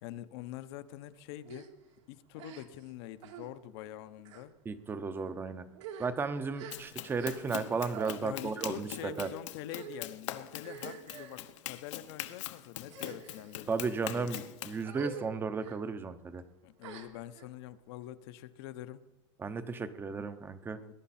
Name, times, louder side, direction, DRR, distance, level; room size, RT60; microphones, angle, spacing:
voice 1, 0.0-1.7 2.1-4.5 8.2-14.3 16.6-19.0 20.8-20.9, left 13 dB, 60° left, 12 dB, 0.9 m, -45 dB
sound 1, 1.5-1.7 2.4-2.9 3.2-3.5 4.2-4.5 5.2-5.3 5.7-7.6 7.9-8.2 9.0-9.3 9.7-10.1 10.6-11.4 12.1-12.4 12.8-13.5 14.1-14.4 14.8-15.3 15.6-15.8 16.8-17.5, right 8 dB, 75° right, 2.3 m, -46 dB
voice 2, 4.6-5.7 6.0-8.9 9.2-9.3 13.7-16.4 19.4-20.8, right 4 dB, 15° right, 12 dB, 0.7 m, -34 dB
Run, 6.7-14.8, left 13 dB, 80° left, 1.2 m, -43 dB
20.0 x 10.5 x 4.3 m, 1.0 s
supercardioid pair, 150°, 15 cm